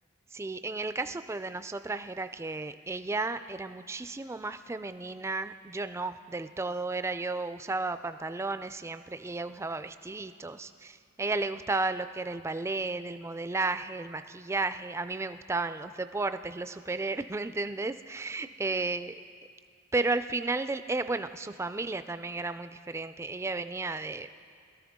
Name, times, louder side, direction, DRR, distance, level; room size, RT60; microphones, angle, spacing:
voice 1, 0.3-19.1 19.9-24.3, right 3 dB, 15° right, 11 dB, 0.3 m, -33 dB
22.0 x 13.5 x 3.6 m, 2.2 s
head